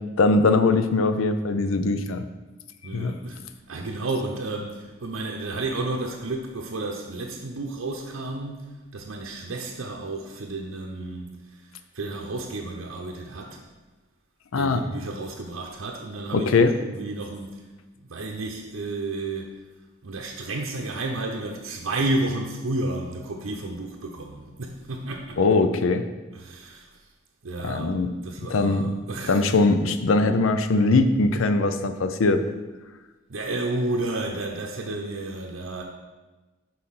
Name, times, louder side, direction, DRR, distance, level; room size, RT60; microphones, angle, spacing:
voice 1, 0.2-2.2 2.9-3.1 14.5-14.8 16.3-16.7 25.4-26.0 27.6-28.1 28.5-28.9 29.3-32.4, left 3 dB, 85° left, 9 dB, 0.5 m, -21 dB
voice 2, 2.8-3.4 3.7-13.6 14.6-17.6 18.0-19.5 20.0-25.4 26.3-27.0 27.4-28.0 28.2-29.5 33.3-35.8, right 2 dB, 85° right, 0 dB, 0.7 m, -32 dB
6.5 x 4.0 x 5.6 m, 1.2 s
head